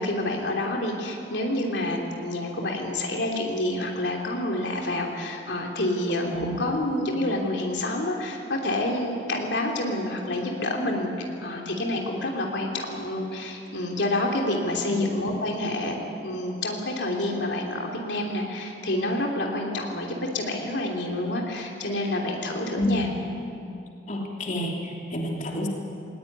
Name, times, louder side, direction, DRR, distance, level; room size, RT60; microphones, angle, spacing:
voice 1, 0.0-11.1 11.4-23.1, left 1 dB, 80° left, 0 dB, 3.0 m, -28 dB
voice 2, 24.1-25.7, left 1 dB, 45° left, -1 dB, 3.2 m, -29 dB
20.0 x 19.5 x 9.7 m, 2.7 s
head